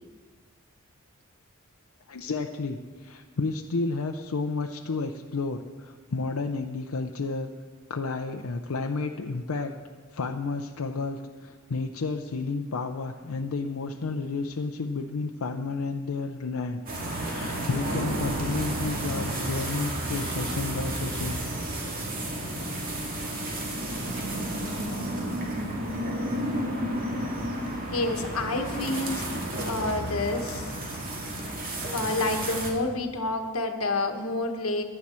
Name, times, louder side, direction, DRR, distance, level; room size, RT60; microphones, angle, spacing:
voice 1, 2.1-7.5 7.9-9.7 10.1-16.8 17.1-21.4 25.4-25.5, left 3 dB, 90° left, 4 dB, 0.6 m, -31 dB
sound 1, 16.9-32.7, right 1 dB, 40° right, 2.2 m, -32 dB
voice 2, 27.9-29.2 29.6-30.7 31.9-34.8, left 2 dB, 70° left, 5 dB, 1.3 m, -28 dB
15.5 x 11.0 x 4.3 m, 1.5 s
head